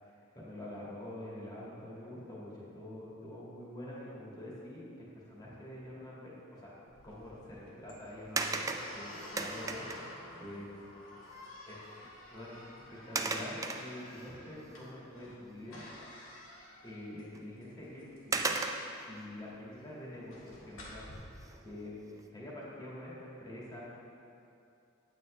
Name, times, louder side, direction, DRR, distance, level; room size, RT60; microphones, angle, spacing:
voice 1, 0.0-6.8 7.0-10.8 11.7-11.8 12.3-12.6 12.9-15.8 16.8-18.6 19.1-23.8, left 1 dB, 20° left, -7 dB, 1.9 m, -46 dB
sound 1, 6.9-21.1, left 1 dB, 75° left, 2.0 m, -51 dB
sound 2, 8.4-10.2 11.4-11.5 11.9-12.1 13.1-14.3 14.8-14.9 17.3-17.4 18.3-19.1 21.3-21.7 22.2-22.3, right 3 dB, 15° right, 0.4 m, -35 dB
9.0 x 8.5 x 3.2 m, 2.6 s
head